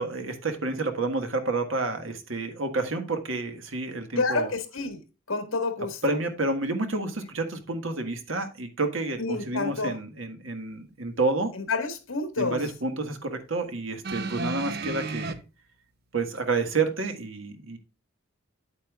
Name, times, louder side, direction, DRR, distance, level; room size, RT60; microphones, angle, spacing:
voice 1, 0.0-4.5 6.0-11.5 12.4-15.4 16.1-17.8, right 3 dB, 70° right, 1.6 m, -29 dB
voice 2, 4.2-5.0 5.3-6.2 9.2-9.9 11.5-12.6, left 3 dB, 75° left, 1.7 m, -29 dB
sound 1, 14.0-15.3 16.3-16.4, right 3 dB, 50° right, 0.8 m, -32 dB
9.0 x 8.4 x 2.4 m
head